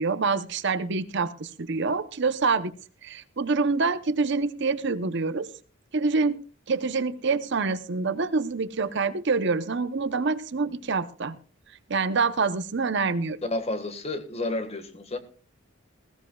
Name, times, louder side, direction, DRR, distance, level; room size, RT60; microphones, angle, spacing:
voice 1, 0.0-2.7 3.0-5.5 5.9-6.4 6.7-11.3 11.9-13.4, right 4 dB, 60° right, 0.8 m, -26 dB
voice 2, 13.4-15.2, left 2 dB, 30° left, 1.5 m, -31 dB
20.0 x 16.0 x 2.3 m
head